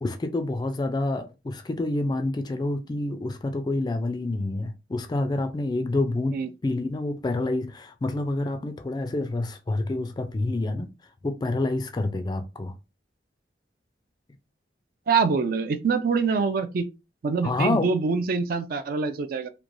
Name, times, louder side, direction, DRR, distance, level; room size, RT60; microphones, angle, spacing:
voice 1, 0.0-10.9 11.2-12.7 17.4-17.9, left 2 dB, 25° left, 0.3 m, -28 dB
voice 2, 15.1-16.8 17.2-19.5, right 5 dB, 50° right, 0.4 m, -25 dB
3.0 x 2.2 x 2.5 m
head